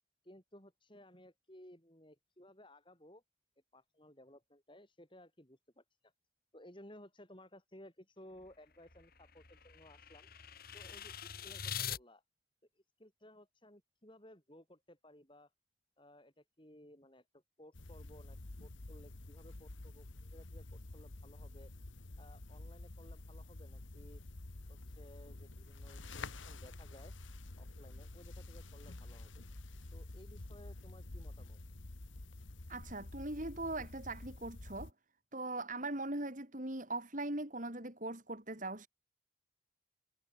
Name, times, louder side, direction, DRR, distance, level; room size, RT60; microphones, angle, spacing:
voice 1, 0.2-3.2 3.7-6.1 6.5-10.3 10.7-12.2 12.8-15.5 16.0-21.7 22.2-24.2 24.7-27.1 27.6-29.5 29.9-31.6, left 1 dB, 25° left, 6.9 m, -58 dB
sound 1, 8.4-12.0, left 8 dB, 50° left, 4.4 m, -44 dB
sound 2, 17.7-34.9, left 2 dB, 80° left, 1.5 m, -49 dB
voice 2, 32.7-34.9 35.3-38.9, right 2 dB, 40° right, 3.5 m, -40 dB
head